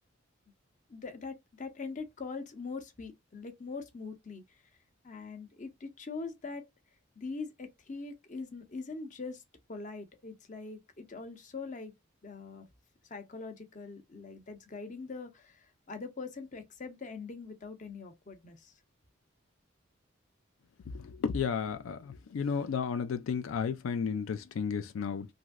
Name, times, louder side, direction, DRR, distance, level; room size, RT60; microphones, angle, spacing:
voice 1, 0.9-4.4 5.0-6.7 7.2-9.4 9.7-11.9 12.2-12.7 13.1-18.7, left 4 dB, 40° left, 0.7 m, -42 dB
voice 2, 21.2-22.0 22.3-25.3, left 6 dB, 85° left, 0.4 m, -32 dB
3.1 x 2.6 x 2.3 m
head